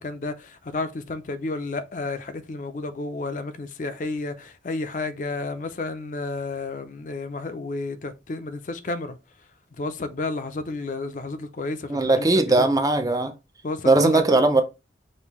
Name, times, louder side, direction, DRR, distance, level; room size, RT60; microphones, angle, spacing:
voice 1, 0.0-9.2 9.8-12.7 13.6-14.4, left 3 dB, 45° left, 0.4 m, -31 dB
voice 2, 11.9-13.3 13.8-14.6, right 2 dB, 20° right, 0.4 m, -19 dB
5.3 x 2.6 x 3.0 m
head